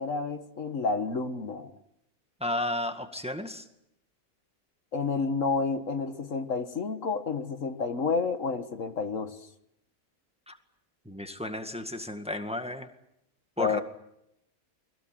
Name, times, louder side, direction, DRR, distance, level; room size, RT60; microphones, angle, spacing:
voice 1, 0.0-1.7 4.9-9.4 13.6-13.8, left 4 dB, 65° left, 9 dB, 1.8 m, -30 dB
voice 2, 2.4-3.6 10.5-10.6 11.1-12.9 13.6-13.8, left 1 dB, 5° right, 7 dB, 1.8 m, -33 dB
29.5 x 21.5 x 7.7 m, 0.80 s
omnidirectional pair, 1.5 m